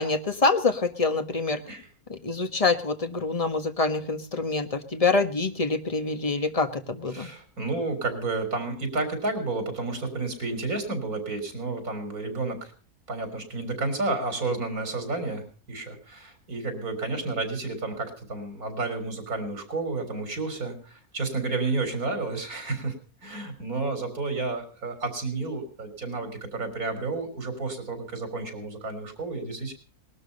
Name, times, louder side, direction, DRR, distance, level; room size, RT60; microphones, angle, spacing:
voice 1, 0.0-1.6 2.1-7.3, left 3 dB, 25° left, 8 dB, 1.4 m, -26 dB
voice 2, 7.1-12.7 13.1-22.9 23.2-29.7, right 3 dB, 90° right, 7 dB, 4.3 m, -31 dB
19.5 x 13.0 x 5.4 m, 0.39 s
omnidirectional pair, 1.5 m